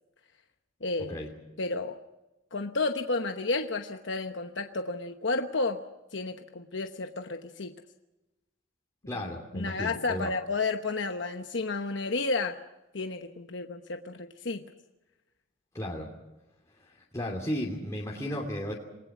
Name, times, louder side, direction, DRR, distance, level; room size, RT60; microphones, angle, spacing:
voice 1, 0.8-1.2 1.6-2.0 2.5-5.8 6.1-7.7 9.5-12.6 12.9-14.6, left 3 dB, 60° left, 6 dB, 1.1 m, -31 dB
voice 2, 9.1-10.3 15.7-16.1 16.8-18.7, equal, 15° left, -3 dB, 2.8 m, -34 dB
27.5 x 19.5 x 6.1 m, 1.0 s
head